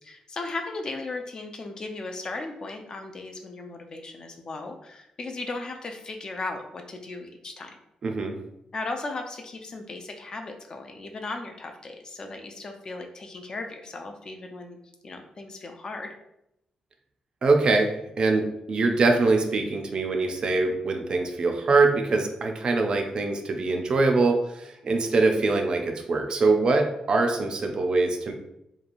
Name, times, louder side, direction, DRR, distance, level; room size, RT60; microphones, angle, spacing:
voice 1, 0.0-7.7 8.7-14.8 15.0-16.1, left 3 dB, 35° left, 4 dB, 0.3 m, -36 dB
voice 2, 8.0-8.4 17.4-28.3, right 3 dB, 45° right, 4 dB, 0.4 m, -23 dB
2.9 x 2.3 x 2.5 m, 0.81 s
wide cardioid pair, 145°, 2 cm